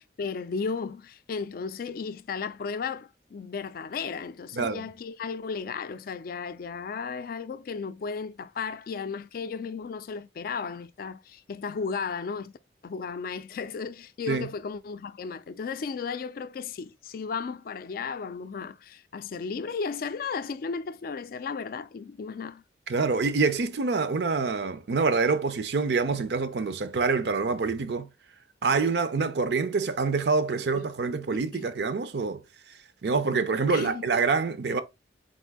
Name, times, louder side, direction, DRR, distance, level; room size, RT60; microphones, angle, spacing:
voice 1, 0.0-12.5 12.8-22.6 31.3-31.7 33.7-34.1, left 5 dB, 55° left, 0.3 m, -34 dB
voice 2, 4.5-4.9 14.3-14.5 22.9-28.1 28.6-32.4 33.0-34.8, right 4 dB, 65° right, 0.5 m, -26 dB
4.2 x 2.6 x 3.5 m
head